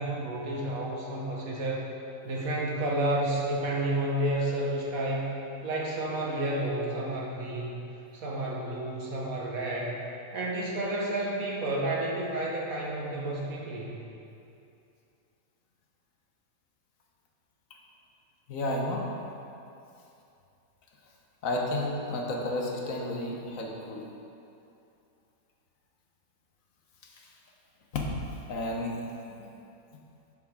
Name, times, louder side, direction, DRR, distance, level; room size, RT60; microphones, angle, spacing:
voice 1, 0.0-1.9 2.2-5.3 5.6-7.8 8.1-10.0 10.3-14.0, right 1 dB, 70° right, -3 dB, 1.8 m, -31 dB
voice 2, 18.5-19.1 21.4-24.0 27.9-28.1 28.5-29.6, left 1 dB, 65° left, 0 dB, 1.4 m, -32 dB
10.5 x 6.9 x 3.6 m, 2.7 s
omnidirectional pair, 1.6 m